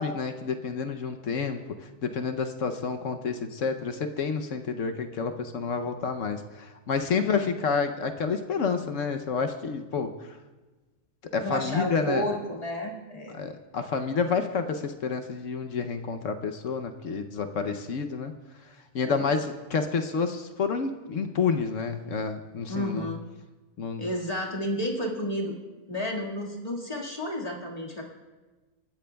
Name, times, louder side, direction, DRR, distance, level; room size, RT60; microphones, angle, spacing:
voice 1, 0.0-1.6 2.0-10.4 11.3-12.3 13.3-18.3 18.9-23.1 23.8-24.0, left 5 dB, 65° left, 6 dB, 1.0 m, -29 dB
voice 2, 11.4-13.4 17.6-17.7 19.0-19.3 22.7-23.2 24.0-25.6 25.9-28.0, equal, 25° left, -2 dB, 1.9 m, -32 dB
27.5 x 13.5 x 2.3 m, 1.2 s
omnidirectional pair, 1.5 m